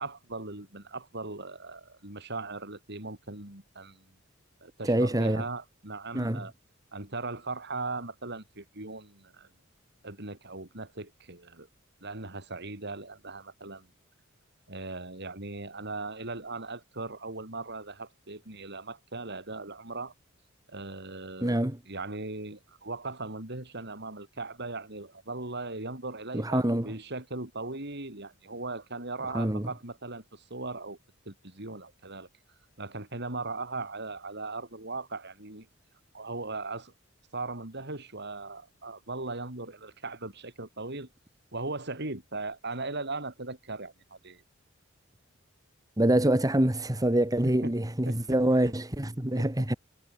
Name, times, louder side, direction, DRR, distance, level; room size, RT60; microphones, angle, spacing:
voice 1, 0.0-4.1 4.6-6.5 6.9-9.5 10.0-11.7 12.0-13.9 14.7-20.1 20.7-21.6 21.9-31.0 31.3-32.3 32.8-35.7 36.1-36.9 37.3-41.1 41.5-44.4 47.4-47.7 48.1-48.4 49.4-49.8, right 3 dB, 55° right, 5.3 m, -38 dB
voice 2, 4.8-5.4 6.1-6.4 21.4-21.8 26.3-26.9 29.3-29.7 46.0-49.7, right 1 dB, 20° right, 1.8 m, -25 dB
head